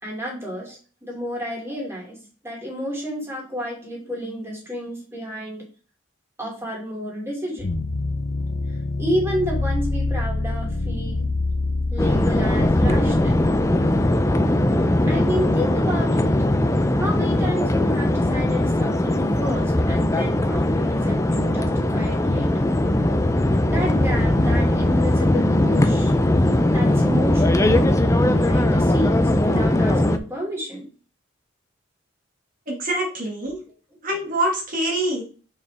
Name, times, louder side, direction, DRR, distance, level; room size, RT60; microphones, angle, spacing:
voice 1, 0.0-2.2 2.4-5.7 6.4-7.7 9.0-11.3 11.9-13.3 15.1-16.3 17.0-22.7 23.6-26.1 26.7-30.9, equal, 10° right, -2 dB, 2.8 m, -30 dB
sound 1, 7.6-14.7, left 2 dB, 80° left, 0.8 m, -27 dB
sound 2, 12.0-30.2, left 1 dB, 15° left, 0.5 m, -20 dB
voice 2, 32.7-33.6 34.0-35.2, right 1 dB, 45° right, -1 dB, 1.8 m, -25 dB
6.7 x 5.6 x 3.5 m, 0.37 s
head